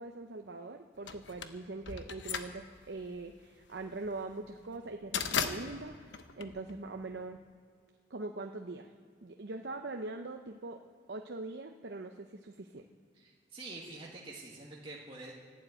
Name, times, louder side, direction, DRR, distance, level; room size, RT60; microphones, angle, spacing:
voice 1, 0.0-6.0 6.4-7.4 8.1-8.9 9.2-10.8 11.1-12.8, right 2 dB, 70° right, 4 dB, 0.7 m, -42 dB
sound 1, 1.1-7.2, left 6 dB, 85° left, 1.0 m, -38 dB
voice 2, 13.1-15.3, right 2 dB, 30° right, -4 dB, 1.7 m, -46 dB
12.0 x 11.5 x 8.9 m, 2.1 s
head